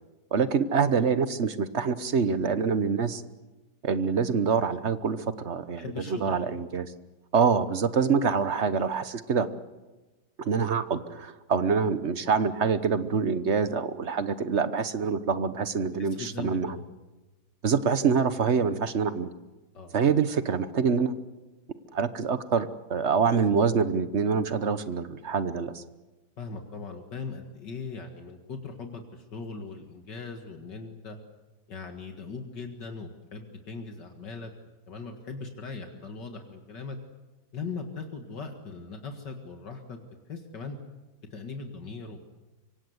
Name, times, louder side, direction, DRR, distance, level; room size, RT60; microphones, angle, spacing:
voice 1, 0.3-3.2 3.8-6.9 7.3-9.5 10.4-16.8 17.6-19.3 19.9-21.1 21.9-25.8, right 5 dB, 45° right, 13 dB, 1.1 m, -25 dB
voice 2, 5.8-6.5 15.9-16.8 19.7-20.0 26.4-31.2 31.7-34.5 34.9-37.0 37.5-40.8 41.3-42.2, left 4 dB, 65° left, 4 dB, 2.4 m, -39 dB
25.0 x 24.5 x 8.0 m, 1.1 s
omnidirectional pair, 2.1 m